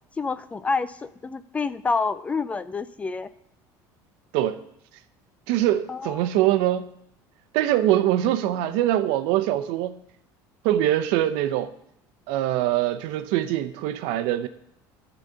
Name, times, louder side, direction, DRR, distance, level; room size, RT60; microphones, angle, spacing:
voice 1, 0.2-3.3 5.9-6.3, left 4 dB, 15° left, 0.3 m, -28 dB
voice 2, 5.5-6.9 7.5-10.0 10.6-11.7 12.3-14.5, right 13 dB, 80° right, 0.7 m, -23 dB
11.0 x 4.1 x 7.2 m
cardioid pair, 145°, 8 cm